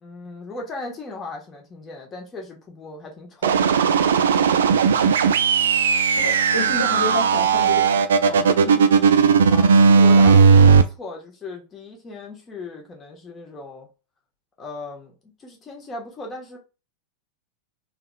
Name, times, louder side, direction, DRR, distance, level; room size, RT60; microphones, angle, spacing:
voice 1, 0.0-3.7 9.5-13.9 14.6-16.6, left 3 dB, 20° left, 1.2 m, -37 dB
sound 1, 3.4-10.8, right 5 dB, 65° right, 0.3 m, -16 dB
voice 2, 6.2-8.8, left 2 dB, 75° left, 1.7 m, -30 dB
3.7 x 3.0 x 2.3 m
figure-of-eight pair, 90°, 0 cm